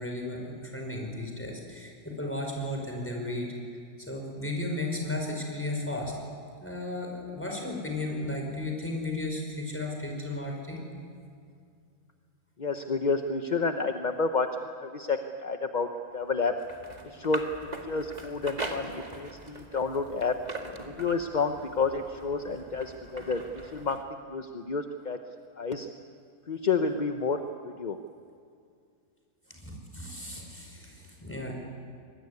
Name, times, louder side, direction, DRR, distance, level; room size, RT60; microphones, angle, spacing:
voice 1, 0.0-3.5 4.0-6.2 6.6-10.8 29.5-31.5, left 2 dB, 5° left, 1 dB, 5.3 m, -34 dB
voice 2, 12.6-14.5 14.8-15.9 16.1-16.5 17.1-17.4 17.9-20.4 21.0-23.4 23.7-25.2 25.6-25.9 26.5-27.4 27.8-28.0, left 4 dB, 35° left, 6 dB, 0.8 m, -29 dB
sound 1, 16.2-24.0, right 2 dB, 25° right, 1.9 m, -42 dB
24.5 x 20.5 x 9.7 m, 2.4 s
omnidirectional pair, 1.7 m